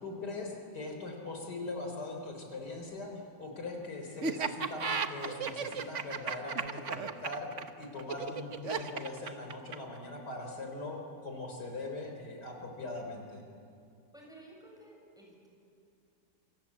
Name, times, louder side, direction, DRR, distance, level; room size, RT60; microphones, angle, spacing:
voice 1, 0.0-3.1 3.4-13.4, left 2 dB, 75° left, 2 dB, 4.3 m, -41 dB
Laughter, 4.2-10.0, right 5 dB, 50° right, 1.4 m, -34 dB
voice 2, 14.1-15.5, right 1 dB, ahead, -2 dB, 7.1 m, -54 dB
27.5 x 25.5 x 8.5 m, 2.5 s
omnidirectional pair, 1.8 m